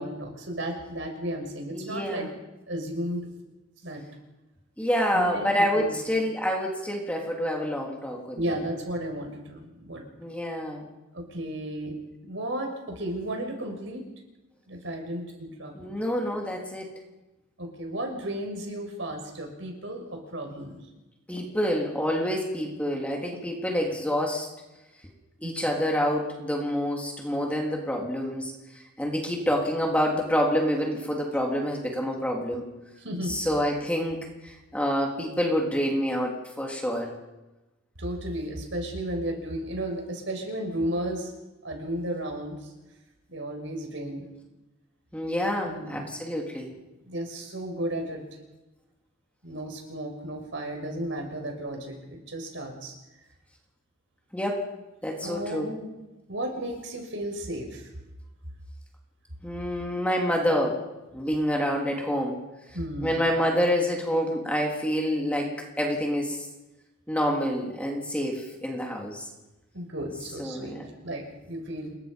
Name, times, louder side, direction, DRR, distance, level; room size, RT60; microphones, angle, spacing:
voice 1, 0.0-2.3 2.7-3.3 3.8-4.0 5.1-5.5 5.7-6.0 8.4-10.0 11.1-11.9 12.2-14.0 14.7-15.7 17.6-20.8 25.4-25.6 33.0-33.4 38.0-41.3 41.6-42.5 43.3-44.3 45.6-46.0 47.0-48.2 49.4-52.9 55.2-55.9 56.3-57.9 62.7-63.2 69.7-70.7 71.0-72.0, right 1 dB, 65° right, 3 dB, 6.3 m, -34 dB
voice 2, 1.7-2.4 4.8-8.4 10.2-10.9 15.8-16.9 21.3-24.5 25.4-28.5 29.0-32.6 33.2-37.1 45.1-46.7 54.3-54.7 55.0-55.7 59.4-60.8 61.1-62.4 63.0-66.5 67.1-69.3 70.4-70.8, equal, 5° left, 0 dB, 3.6 m, -27 dB
29.0 x 23.0 x 5.5 m, 1.0 s
head